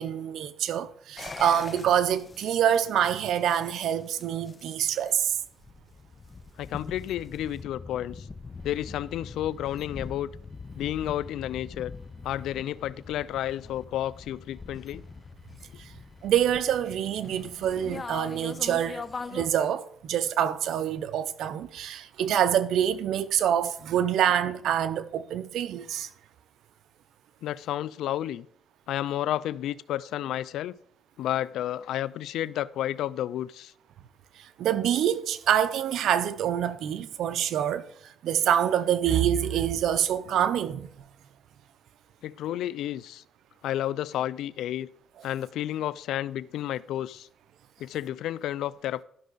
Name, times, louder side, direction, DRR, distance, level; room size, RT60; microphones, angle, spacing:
voice 1, 0.0-5.4 16.2-19.0 19.3-26.1 34.4-40.9, right 9 dB, 75° right, 0.8 m, -26 dB
sound 1, 1.2-19.5, left 4 dB, 30° left, 0.6 m, -43 dB
voice 2, 6.6-8.3 8.6-10.3 10.8-11.9 12.2-15.0 27.4-28.5 28.9-30.8 31.2-33.7 42.2-43.2 43.6-44.9 45.2-47.3 47.8-49.0, left 12 dB, 85° left, 0.4 m, -31 dB
12.5 x 6.2 x 4.0 m
cardioid pair, 90°, 0 cm